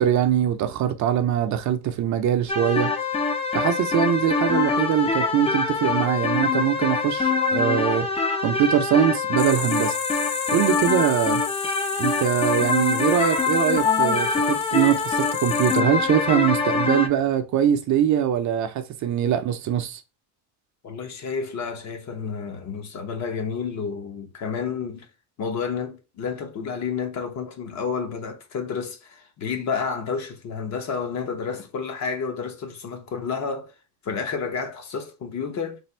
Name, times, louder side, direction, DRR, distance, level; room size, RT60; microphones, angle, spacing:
voice 1, 0.0-2.9 3.5-8.1 8.4-10.0 10.5-11.4 12.0-20.0, right 10 dB, 50° right, 0.6 m, -22 dB
sound 1, 2.5-17.1, left 4 dB, 15° left, 0.4 m, -24 dB
sound 2, 9.4-15.8, left 9 dB, 70° left, 0.7 m, -35 dB
voice 2, 20.8-25.1 25.4-33.7 34.0-35.8, left 5 dB, 45° left, 1.0 m, -30 dB
3.4 x 2.5 x 4.3 m
cardioid pair, 140°, 39 cm